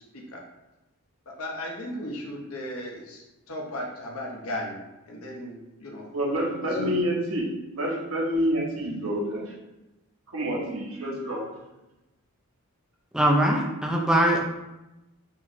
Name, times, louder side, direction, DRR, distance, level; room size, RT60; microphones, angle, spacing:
voice 1, 0.1-0.5 1.3-6.1 6.6-7.0, left 1 dB, 75° left, -1 dB, 0.9 m, -36 dB
voice 2, 6.1-9.5 10.3-11.6, equal, 70° right, -3 dB, 1.2 m, -28 dB
voice 3, 13.1-14.4, right 1 dB, 5° right, -1 dB, 0.4 m, -21 dB
5.5 x 3.1 x 2.6 m, 0.98 s
head